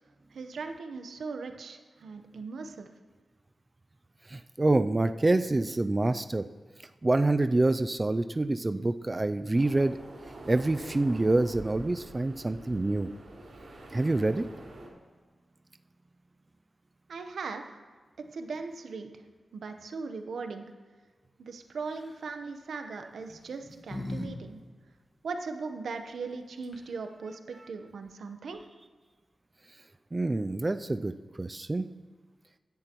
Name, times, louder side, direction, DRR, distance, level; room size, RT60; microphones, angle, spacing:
voice 1, 0.3-2.9 17.1-17.8 18.3-19.1 19.5-20.7 21.4-24.6 25.2-28.7, right 4 dB, 90° right, 6 dB, 1.0 m, -39 dB
voice 2, 4.3-6.5 7.0-10.0 10.5-13.1 13.9-14.5 30.1-31.9, right 2 dB, 20° right, 10 dB, 0.3 m, -26 dB
sound 1, 9.5-14.9, right 1 dB, 70° right, 3.8 m, -46 dB
sound 2, 21.8-22.2 23.2-24.3 24.6-24.7 26.3-26.4 26.6-27.1, left 1 dB, 30° left, 1.8 m, -39 dB
16.5 x 10.5 x 3.0 m, 1.4 s
wide cardioid pair, 145°, 0 cm